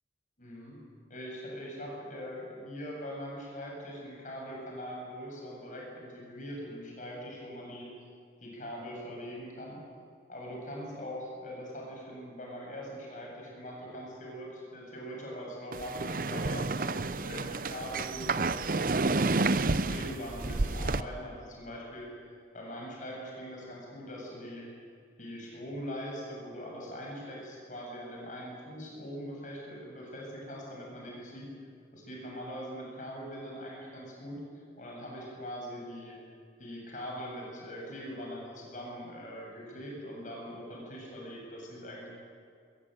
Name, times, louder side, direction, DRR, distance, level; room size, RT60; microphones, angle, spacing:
voice 1, 0.4-0.8 1.1-7.9 8.4-9.8 10.3-19.3 19.8-22.1 22.5-24.7 25.2-31.5 31.9-36.2 36.6-42.1, equal, 45° left, -2 dB, 7.7 m, -42 dB
sound 1, 15.7-21.0, right 3 dB, 50° right, 0.7 m, -30 dB
23.0 x 22.0 x 9.2 m, 2.3 s
head